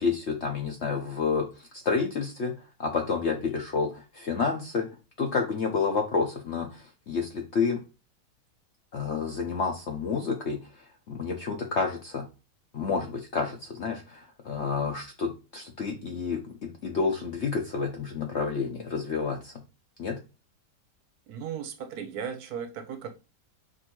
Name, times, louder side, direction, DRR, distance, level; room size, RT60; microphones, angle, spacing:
voice 1, 0.0-4.9 5.2-7.8 8.9-12.3 12.7-19.6 20.0-20.2, left 5 dB, 60° left, 0.7 m, -30 dB
voice 2, 21.3-23.2, right 7 dB, 70° right, 1.0 m, -36 dB
6.0 x 2.7 x 2.9 m
omnidirectional pair, 1.8 m